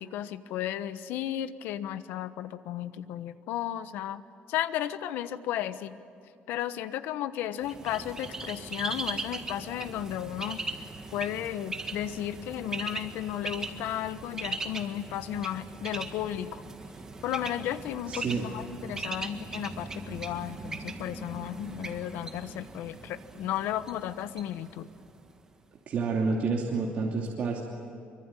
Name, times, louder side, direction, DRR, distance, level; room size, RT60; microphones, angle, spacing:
voice 1, 0.0-4.2 4.5-5.9 6.5-10.6 11.1-16.6 17.2-24.9, left 11 dB, 85° left, 12 dB, 1.2 m, -34 dB
Bird, 7.6-25.4, right 3 dB, 20° right, 1.7 m, -39 dB
voice 2, 18.1-18.5 25.9-27.6, right 4 dB, 45° right, -2 dB, 2.9 m, -29 dB
25.0 x 24.0 x 9.1 m, 2.5 s
cardioid pair, 155°, 3 cm